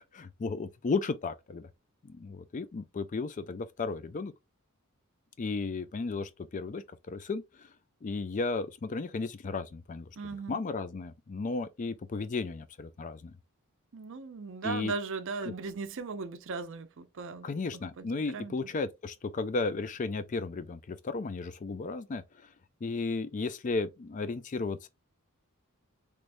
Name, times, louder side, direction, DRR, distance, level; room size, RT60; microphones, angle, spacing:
voice 1, 0.1-1.7 2.0-4.3 5.4-7.7 8.0-10.1 10.5-13.3 14.6-14.9 17.4-22.2 22.8-24.9, left 3 dB, 35° left, 0.4 m, -34 dB
voice 2, 10.2-10.6 13.9-17.5 18.0-18.1 18.3-18.5, right 4 dB, 60° right, 0.5 m, -37 dB
3.4 x 3.1 x 2.5 m
head